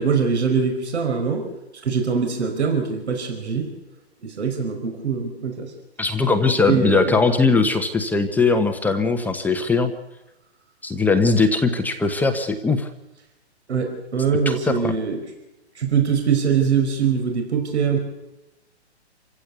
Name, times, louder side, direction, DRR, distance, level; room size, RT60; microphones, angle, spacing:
voice 1, 0.0-1.5 1.8-3.7 4.2-5.7 6.7-7.1 13.7-15.2 15.7-18.0, right 6 dB, 75° right, 4 dB, 4.9 m, -22 dB
voice 2, 6.0-9.9 10.8-12.9 14.5-14.9, left 4 dB, 5° left, 5 dB, 1.0 m, -20 dB
27.5 x 16.0 x 8.3 m, 1.0 s
hypercardioid pair, 145°, 34 cm